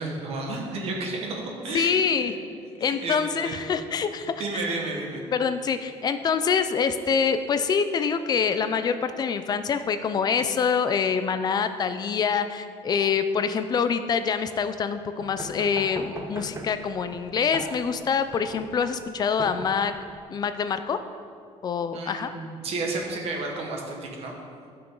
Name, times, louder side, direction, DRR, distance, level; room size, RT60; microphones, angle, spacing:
voice 1, 0.0-2.4 2.8-3.9 4.4-5.2 9.5-9.6 21.9-24.3, right 2 dB, 50° right, 0 dB, 1.5 m, -32 dB
voice 2, 1.7-2.3 2.8-4.4 5.3-19.9 20.3-21.0 21.6-22.3, left 6 dB, 30° left, 10 dB, 0.4 m, -25 dB
sound 1, 15.2-20.2, right 2 dB, 25° right, 0.8 m, -39 dB
12.5 x 5.9 x 3.9 m, 2.3 s
cardioid pair, 165°, 13 cm